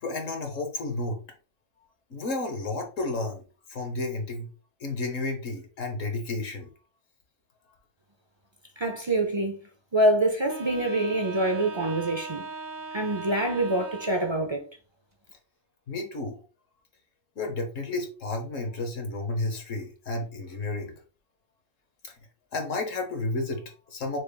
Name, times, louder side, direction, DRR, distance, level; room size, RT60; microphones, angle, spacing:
voice 1, 0.0-1.2 2.1-3.4 3.7-4.5 4.8-6.7 15.9-16.4 17.4-20.9 22.0-22.1 22.5-24.2, left 2 dB, 80° left, 1.5 m, -32 dB
voice 2, 8.8-9.6 9.9-12.5 12.9-14.6, right 1 dB, 35° right, 0.4 m, -25 dB
Wind instrument woodwind instrument, 10.5-14.6, right 2 dB, 15° right, 1.1 m, -39 dB
6.2 x 3.3 x 2.3 m
omnidirectional pair, 1.3 m